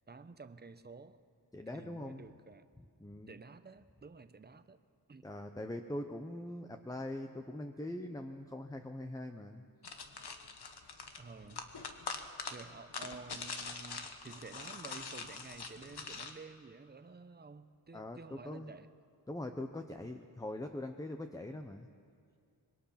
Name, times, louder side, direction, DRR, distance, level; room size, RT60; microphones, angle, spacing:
voice 1, 0.1-1.2 1.7-2.7 3.3-4.8 5.1-5.3 11.2-11.7 12.5-18.9, right 4 dB, 25° right, 11 dB, 0.8 m, -51 dB
voice 2, 1.5-2.3 2.8-3.4 5.2-9.6 17.9-18.7 19.3-21.9, left 1 dB, 10° left, 5 dB, 0.8 m, -42 dB
sound 1, 9.8-16.3, left 5 dB, 70° left, 1.6 m, -44 dB
25.5 x 22.5 x 5.8 m, 2.2 s
wide cardioid pair, 140°, 41 cm